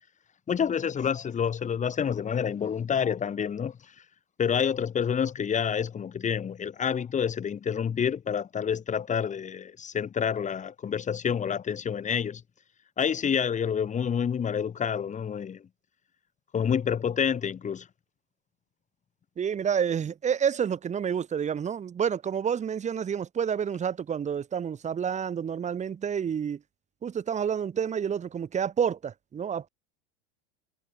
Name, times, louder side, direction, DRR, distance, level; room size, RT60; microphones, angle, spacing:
voice 1, 0.5-3.9 4.4-12.4 13.0-15.7 16.5-17.9, left 7 dB, 20° left, 3.6 m, -28 dB
voice 2, 19.4-26.6 27.0-29.7, right 7 dB, 20° right, 1.9 m, -29 dB
supercardioid pair, 150°, 35 cm